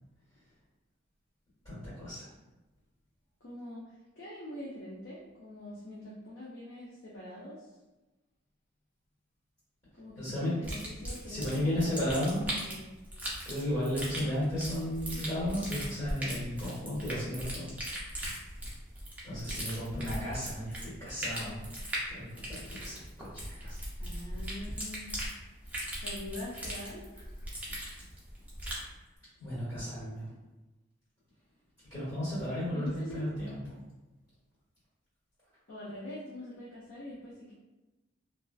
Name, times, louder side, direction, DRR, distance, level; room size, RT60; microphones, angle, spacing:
voice 1, 1.6-2.3 10.2-10.5 11.2-12.5 13.4-17.6 19.2-21.7 22.1-23.8 29.4-30.3 31.9-33.6, left 1 dB, 25° left, -15 dB, 1.3 m, -34 dB
voice 2, 3.4-7.7 10.0-12.9 14.1-14.3 24.0-25.4 25.8-27.3 32.7-33.2 35.7-37.5, left 1 dB, 55° left, -7 dB, 0.5 m, -44 dB
sound 1, 10.6-28.9, right 1 dB, 5° right, 0.4 m, -39 dB
2.3 x 2.3 x 2.3 m, 1.1 s
head